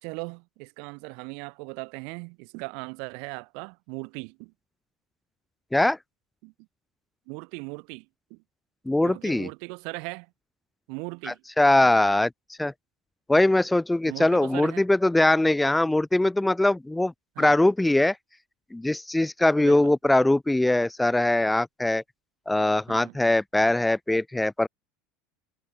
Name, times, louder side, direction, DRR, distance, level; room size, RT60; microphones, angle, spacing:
voice 1, 0.0-4.5 6.4-6.5 7.3-8.4 9.0-10.3 10.9-11.4 14.0-14.9 17.4-17.6 19.6-19.9 22.9-23.2, right 36 dB, 55° right, 2.8 m, -38 dB
voice 2, 8.9-9.5 11.3-12.3 12.6-12.7 13.3-17.1 17.4-18.2 18.7-22.0 22.5-24.7, left 1 dB, 5° left, 1.1 m, -22 dB
figure-of-eight pair, 70°, 0 cm